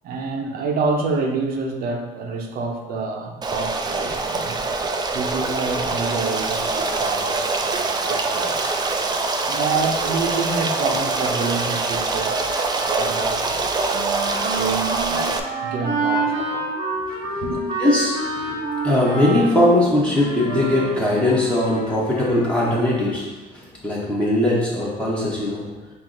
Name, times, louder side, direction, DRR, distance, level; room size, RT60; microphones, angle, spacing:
voice 1, 0.0-4.6 5.1-8.7 9.4-12.5 12.8-14.1 14.5-16.7 17.4-17.6, right 4 dB, 65° right, 3 dB, 0.7 m, -27 dB
Stream, 3.4-15.4, right 3 dB, 25° right, 0.3 m, -24 dB
Trumpet, 8.0-19.7 20.1-23.1, left 2 dB, 60° left, 1.1 m, -39 dB
Wind instrument woodwind instrument, 13.9-21.0, right 3 dB, 85° right, 1.0 m, -27 dB
voice 2, 17.8-18.6 18.8-25.7, left 1 dB, 5° left, -7 dB, 0.9 m, -20 dB
6.0 x 2.0 x 3.8 m, 1.2 s
cardioid pair, 110°, 17 cm